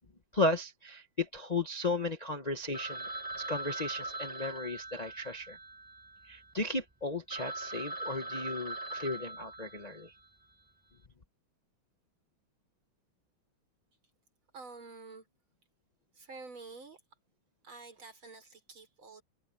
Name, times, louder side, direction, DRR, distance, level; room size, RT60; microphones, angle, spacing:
voice 1, 0.3-3.1 3.4-5.6 6.3-10.1, left 2 dB, 40° left, 0.6 m, -35 dB
Telephone, 2.7-6.5 7.0-7.1 7.3-10.2, right 2 dB, 15° right, 0.8 m, -41 dB
voice 2, 14.5-15.3 16.1-17.0 17.6-19.2, right 4 dB, 90° right, 5.7 m, -49 dB
omnidirectional pair, 2.2 m